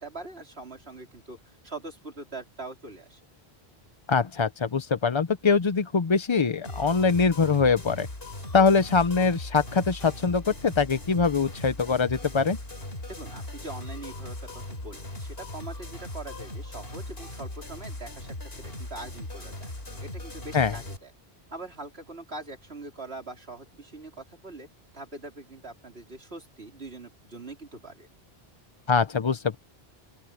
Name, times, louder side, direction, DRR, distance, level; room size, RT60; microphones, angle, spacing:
voice 1, 0.0-3.2 13.1-19.7 20.0-21.1 21.5-24.7 24.9-28.1, right 2 dB, 80° right, 4.2 m, -42 dB
voice 2, 4.1-8.1 8.5-12.6 20.5-20.7 28.9-29.6, left 5 dB, 35° left, 0.6 m, -23 dB
sound 1, 6.6-21.0, left 1 dB, 70° left, 4.3 m, -39 dB
open air
omnidirectional pair, 1.0 m